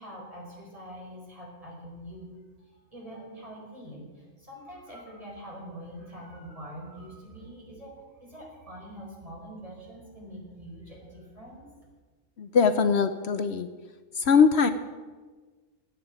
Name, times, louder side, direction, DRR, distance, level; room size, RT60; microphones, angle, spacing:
voice 1, 0.0-11.7, equal, 25° right, -3 dB, 5.0 m, -44 dB
voice 2, 12.4-13.7 14.2-14.7, left 6 dB, 60° left, 10 dB, 1.0 m, -21 dB
15.5 x 9.4 x 8.8 m, 1.4 s
omnidirectional pair, 1.3 m